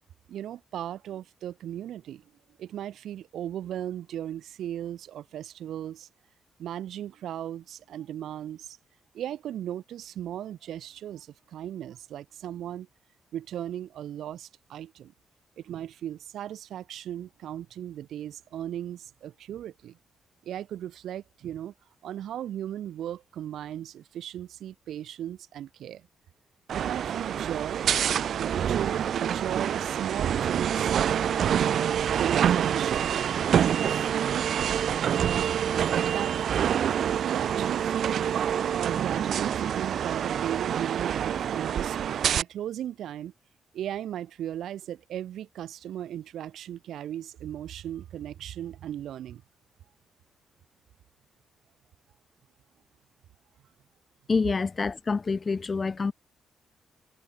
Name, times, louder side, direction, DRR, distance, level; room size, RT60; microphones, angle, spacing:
voice 1, 0.3-2.2 2.6-6.1 6.6-8.8 9.1-12.9 13.3-15.1 15.6-20.0 20.4-21.7 22.0-26.1 26.7-27.9 28.3-31.0 32.0-33.1 33.6-34.5 35.0-35.5 36.0-36.4 36.6-38.3 38.7-43.3 43.7-49.4, right 11 dB, 85° right, 0.9 m, -37 dB
sound 1, 26.7-42.4, right 9 dB, 70° right, 0.3 m, -26 dB
voice 2, 54.3-56.1, left 4 dB, 35° left, 0.5 m, -27 dB
cardioid pair, 110°, 0 cm